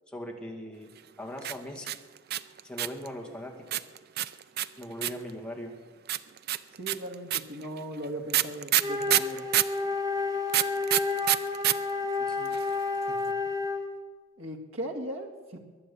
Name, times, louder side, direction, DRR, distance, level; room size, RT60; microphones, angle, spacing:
voice 1, 0.1-0.9 1.2-1.9 2.6-3.8 4.8-5.8 12.2-12.5 13.1-13.3, equal, 5° left, 0 dB, 2.1 m, -40 dB
sound 1, 1.4-3.1 3.7-5.3 6.1-9.8 10.5-11.7 12.0-12.1 12.3-12.8, right 13 dB, 50° right, 0.4 m, -26 dB
voice 2, 6.7-9.5 14.4-15.6, right 1 dB, 70° right, 4 dB, 2.0 m, -38 dB
Wind instrument woodwind instrument, 8.8-14.0, left 3 dB, 15° right, 1.3 m, -30 dB
22.5 x 8.9 x 7.0 m, 1.4 s
head